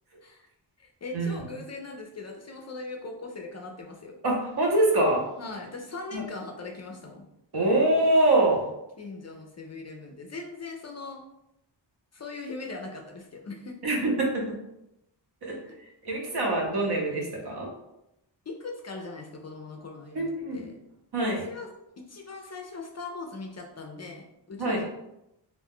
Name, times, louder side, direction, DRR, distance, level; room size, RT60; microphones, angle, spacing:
voice 1, 0.8-4.2 5.4-7.2 9.0-11.2 12.1-13.7 18.5-20.8 21.3-21.7 22.1-24.9, left 3 dB, 40° left, 1 dB, 0.4 m, -40 dB
voice 2, 4.2-5.2 6.1-6.2 7.5-8.6 13.8-14.6 15.4-15.6 16.0-17.7 20.1-20.6 21.1-21.4 24.6-24.8, right 1 dB, 60° right, -1 dB, 0.9 m, -24 dB
2.5 x 2.2 x 3.5 m, 0.86 s
wide cardioid pair, 110°, 44 cm